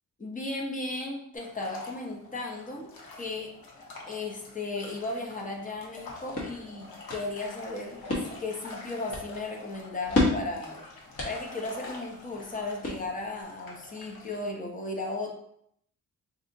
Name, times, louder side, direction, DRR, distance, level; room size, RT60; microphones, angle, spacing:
voice 1, 0.2-3.5 4.1-8.0 8.4-10.8 11.2-15.3, left 2 dB, 25° left, 0 dB, 0.6 m, -35 dB
sound 1, 1.3-14.5, left 3 dB, 80° left, 0.9 m, -47 dB
sound 2, 5.8-13.4, left 2 dB, 45° left, 1.1 m, -34 dB
4.0 x 2.7 x 2.6 m, 0.71 s
wide cardioid pair, 155°, 35 cm